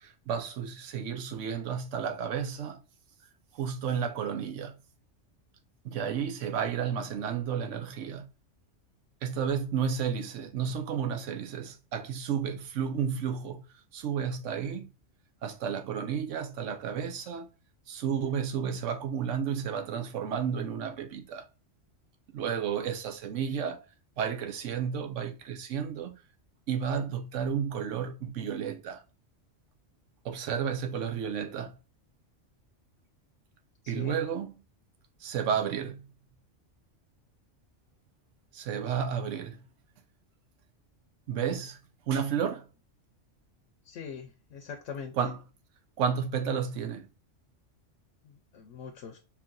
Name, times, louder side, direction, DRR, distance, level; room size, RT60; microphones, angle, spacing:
voice 1, 0.0-2.8 3.5-4.8 5.8-8.3 9.2-13.6 13.9-14.9 15.4-17.5 17.9-21.5 22.3-23.8 24.2-26.1 26.7-29.0 30.2-31.8 33.9-34.5 35.2-36.1 38.5-39.6 41.3-41.8 42.1-42.7 45.1-45.4 46.0-47.1, right 7 dB, 85° right, 1.0 m, -32 dB
voice 2, 33.8-34.2 43.8-45.1 48.2-49.2, left 6 dB, 85° left, 1.1 m, -42 dB
4.6 x 2.9 x 2.5 m
omnidirectional pair, 1.3 m